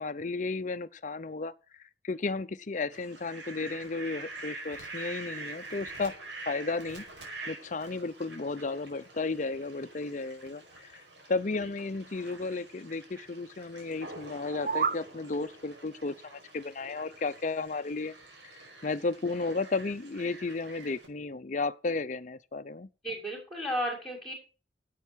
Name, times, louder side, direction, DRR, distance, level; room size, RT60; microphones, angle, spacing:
voice 1, 0.0-6.2 6.5-7.0 7.5-11.0 11.3-18.1 18.5-22.9, left 3 dB, 45° left, 0.6 m, -34 dB
Fowl, 2.9-21.1, right 2 dB, 85° right, 5.2 m, -46 dB
sound 1, 14.4-15.1, right 6 dB, 50° right, 0.5 m, -30 dB
voice 2, 23.0-24.3, equal, 5° left, 5.5 m, -33 dB
10.5 x 8.4 x 6.2 m
head